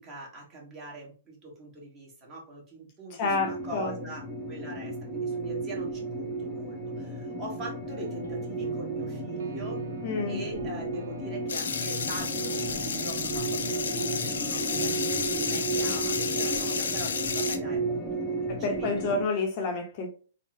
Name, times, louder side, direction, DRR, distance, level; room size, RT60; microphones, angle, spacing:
voice 1, 0.0-9.8 10.3-19.2, right 2 dB, 25° right, 1.3 m, -42 dB
voice 2, 3.1-3.9 10.0-10.4 18.5-20.1, left 3 dB, 40° left, 0.6 m, -29 dB
sound 1, 3.3-19.2, right 2 dB, 5° left, 0.5 m, -33 dB
sound 2, 7.9-15.1, right 7 dB, 75° right, 0.4 m, -44 dB
sound 3, 11.5-17.6, left 6 dB, 80° left, 0.4 m, -31 dB
3.5 x 2.0 x 2.6 m
hypercardioid pair, 140°, 0 cm